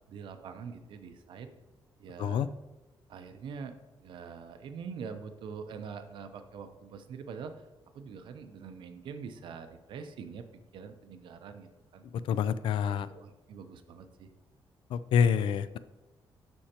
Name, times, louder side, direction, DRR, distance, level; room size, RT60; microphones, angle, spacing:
voice 1, 0.1-1.5 2.0-2.5 3.1-7.7 7.9-12.0 12.9-14.3, right 6 dB, 65° right, 8 dB, 0.6 m, -44 dB
voice 2, 12.2-13.1 14.9-15.8, left 7 dB, 70° left, 15 dB, 0.4 m, -27 dB
11.5 x 4.4 x 2.9 m, 1.1 s
wide cardioid pair, 180°, 9 cm